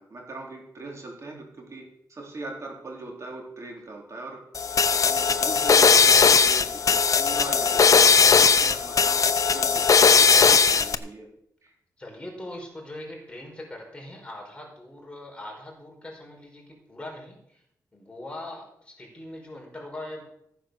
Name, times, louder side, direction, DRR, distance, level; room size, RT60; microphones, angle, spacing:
voice 1, 0.0-4.4 4.9-10.3 10.6-11.3 11.6-11.7, right 2 dB, 45° right, 0 dB, 3.8 m, -40 dB
sound 1, 4.5-10.9, left 5 dB, 50° left, 0.8 m, -18 dB
voice 2, 12.0-17.6 17.9-20.2, left 1 dB, 15° left, 0 dB, 5.2 m, -41 dB
15.0 x 9.3 x 6.6 m, 0.73 s
wide cardioid pair, 105°, 7 cm